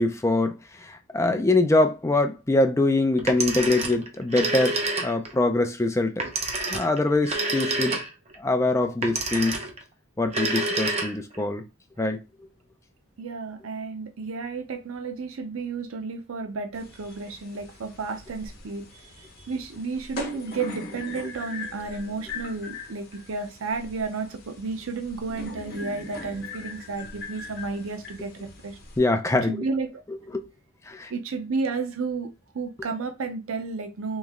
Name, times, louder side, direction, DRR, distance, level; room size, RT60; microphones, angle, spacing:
voice 1, 0.0-6.1 6.7-8.0 8.4-9.6 10.2-11.6 12.0-12.2 29.0-29.6 30.3-30.4 30.9-31.1, left 2 dB, 15° left, 0.4 m, -23 dB
Telephone, 3.2-5.4 6.2-8.3 9.0-9.8 10.2-11.4, right 2 dB, 30° right, 0.7 m, -28 dB
voice 2, 13.2-28.8 29.4-30.0 31.1-32.3 32.5-34.2, right 4 dB, 80° right, 0.6 m, -32 dB
sound 1, 16.7-29.0, left 4 dB, 50° left, 1.0 m, -41 dB
3.1 x 3.1 x 3.6 m
head